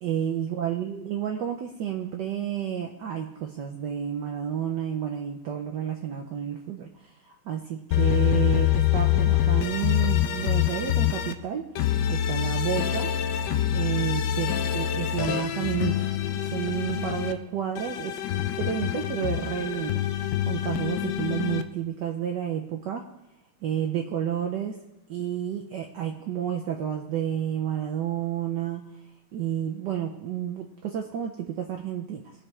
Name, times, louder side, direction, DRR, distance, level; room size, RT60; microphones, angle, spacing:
voice 1, 0.0-7.1 7.4-11.7 12.1-13.1 13.7-16.0 16.3-18.2 18.6-20.0 20.5-23.0 23.6-24.8 25.1-28.8 29.3-32.3, right 9 dB, 70° right, 2 dB, 1.2 m, -30 dB
sound 1, 7.9-11.3 11.8-17.3 17.8-21.6, left 11 dB, 75° left, 1.1 m, -25 dB
18.0 x 6.1 x 3.3 m, 0.93 s
omnidirectional pair, 2.2 m